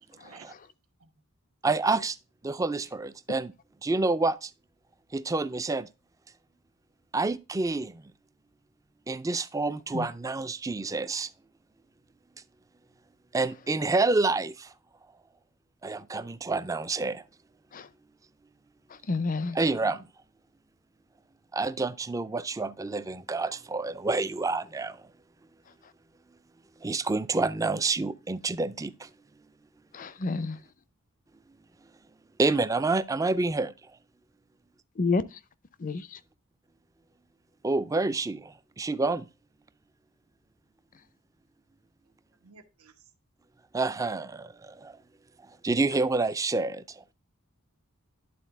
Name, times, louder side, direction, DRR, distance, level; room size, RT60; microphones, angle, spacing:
voice 1, 0.1-0.5 1.0-1.1 42.3-43.1, right 5 dB, 85° right, 1.3 m, -54 dB
voice 2, 1.6-2.2 2.4-3.5 3.8-4.5 5.1-5.9 7.1-8.0 9.1-11.3 13.3-14.7 15.8-17.2 19.6-20.1 21.5-25.0 26.8-29.1 32.4-33.7 37.6-39.3 43.7-44.9 45.6-46.8, right 3 dB, 15° right, 0.4 m, -28 dB
voice 3, 18.9-19.6 29.9-30.6 35.0-35.4 35.8-36.2, left 3 dB, 40° left, 0.5 m, -30 dB
11.0 x 4.0 x 3.4 m
head